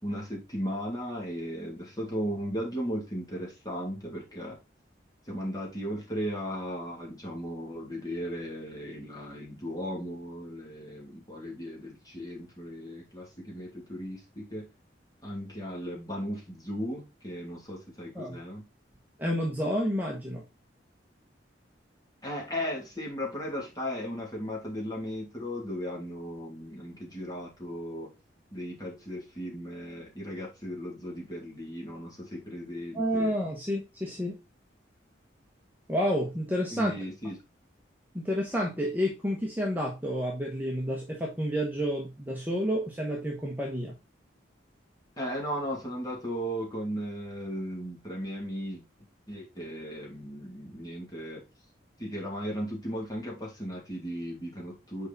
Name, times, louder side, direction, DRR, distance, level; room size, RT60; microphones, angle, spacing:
voice 1, 0.0-4.6 5.2-14.7 15.2-18.6 22.2-28.1 28.5-33.4 36.7-37.4 45.2-48.8 49.3-51.4 52.0-55.1, equal, 20° left, -2 dB, 2.5 m, -36 dB
voice 2, 19.2-20.4 32.9-34.4 35.9-36.9 38.1-43.9, equal, 10° right, -2 dB, 1.1 m, -30 dB
6.4 x 4.8 x 4.0 m, 0.25 s
head